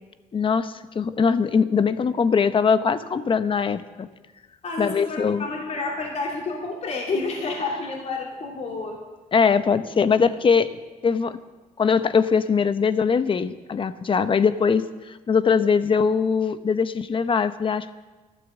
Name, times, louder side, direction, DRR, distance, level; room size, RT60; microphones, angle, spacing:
voice 1, 0.3-4.1 4.8-5.5 9.3-10.7 11.0-11.4 11.8-17.9, left 6 dB, 35° left, 12 dB, 0.8 m, -21 dB
voice 2, 4.6-9.0, left 3 dB, 50° left, -2 dB, 2.9 m, -29 dB
13.0 x 13.0 x 7.3 m, 1.2 s
cardioid pair, 105°, 15 cm